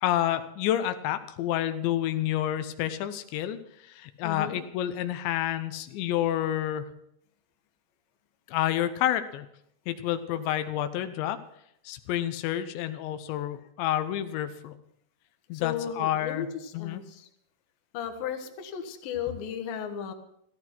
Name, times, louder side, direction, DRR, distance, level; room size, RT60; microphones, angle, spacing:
voice 1, 0.0-6.9 8.5-9.5 9.9-11.4 11.8-14.7 15.5-16.5 16.7-17.0, left 12 dB, 85° left, 10 dB, 3.2 m, -29 dB
voice 2, 4.2-4.6 15.5-17.3 17.9-20.1, left 8 dB, 65° left, 6 dB, 2.9 m, -35 dB
14.5 x 14.0 x 6.0 m, 0.75 s
omnidirectional pair, 5.0 m